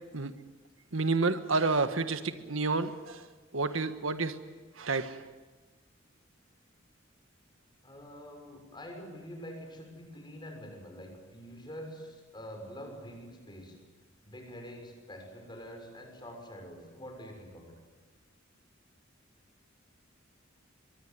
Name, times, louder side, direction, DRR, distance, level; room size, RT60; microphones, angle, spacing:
voice 1, 0.9-3.2 3.5-4.4 4.8-5.2, right 3 dB, 90° right, 10 dB, 1.5 m, -29 dB
voice 2, 7.8-13.8 14.2-17.8, equal, 25° left, 3 dB, 6.3 m, -46 dB
23.5 x 23.5 x 9.5 m, 1.3 s
head